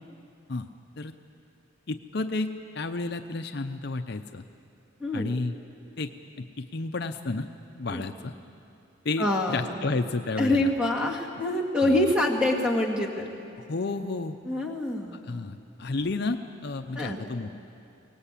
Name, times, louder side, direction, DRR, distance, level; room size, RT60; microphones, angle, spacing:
voice 1, 1.9-4.4 5.1-5.6 6.0-6.1 6.4-7.5 7.8-8.3 9.0-10.7 11.8-12.1 13.6-14.4 15.1-17.6, left 3 dB, 55° left, 7 dB, 0.6 m, -31 dB
voice 2, 5.0-5.4 7.9-8.0 9.2-9.8 10.4-13.2 14.5-15.2 17.0-17.2, left 1 dB, 5° right, 0 dB, 2.2 m, -25 dB
23.0 x 18.5 x 8.4 m, 2.6 s
head